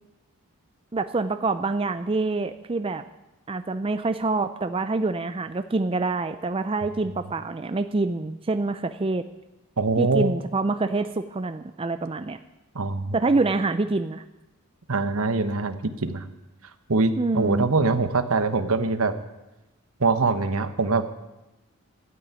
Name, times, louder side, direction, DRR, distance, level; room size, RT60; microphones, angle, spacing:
voice 1, 0.9-3.0 3.5-9.2 10.0-12.4 13.1-14.2 17.2-17.7, right 3 dB, 25° right, 9 dB, 0.4 m, -26 dB
voice 2, 9.8-10.4 12.7-13.2 14.9-16.3 16.9-19.1 20.0-21.1, right 3 dB, 75° right, 10 dB, 1.1 m, -23 dB
12.5 x 8.6 x 9.7 m, 0.99 s
head